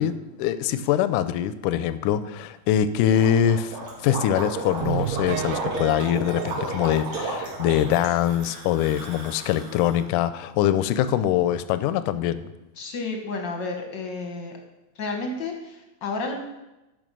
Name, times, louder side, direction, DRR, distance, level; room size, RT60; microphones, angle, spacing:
voice 1, 0.0-3.7 4.0-12.5, left 10 dB, 85° left, 13 dB, 2.1 m, -23 dB
Gurgling, 3.1-10.0, right 2 dB, 60° right, 4.3 m, -33 dB
sound 1, 4.8-7.5 7.9-8.0 8.4-8.5 8.9-9.0, right 12 dB, 85° right, 2.1 m, -33 dB
voice 2, 12.8-14.5 14.9-16.3, left 3 dB, 55° left, 2 dB, 1.2 m, -31 dB
12.5 x 5.2 x 6.1 m, 0.97 s
omnidirectional pair, 3.6 m